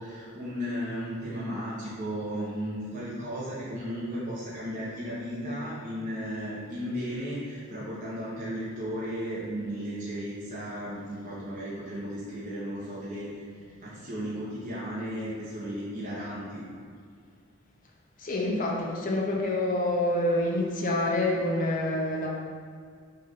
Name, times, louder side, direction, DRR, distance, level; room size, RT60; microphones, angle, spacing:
voice 1, 0.0-16.6, equal, 40° right, -9 dB, 1.2 m, -35 dB
voice 2, 18.2-22.3, left 1 dB, 40° left, -2 dB, 0.8 m, -27 dB
6.5 x 2.8 x 5.4 m, 2.1 s
head